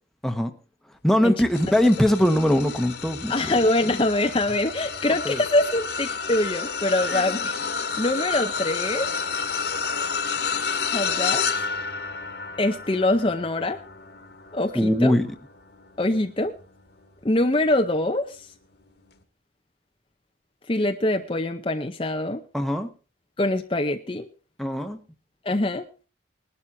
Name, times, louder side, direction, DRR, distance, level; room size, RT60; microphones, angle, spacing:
voice 1, 1.0-3.3 5.2-5.4 7.0-7.2 14.7-15.3 22.5-22.9 24.6-25.0, left 1 dB, ahead, 6 dB, 1.2 m, -21 dB
sound 1, 1.5-17.0 17.6-17.8 19.1-19.2, left 5 dB, 55° left, 1.6 m, -30 dB
voice 2, 3.3-7.6 8.0-9.1 10.9-11.6 12.6-13.8 14.5-15.2 16.0-16.5 17.2-18.5 20.7-22.4 23.4-24.3 25.4-25.9, left 1 dB, 25° left, 6 dB, 0.7 m, -24 dB
20.5 x 12.0 x 2.8 m, 0.34 s
head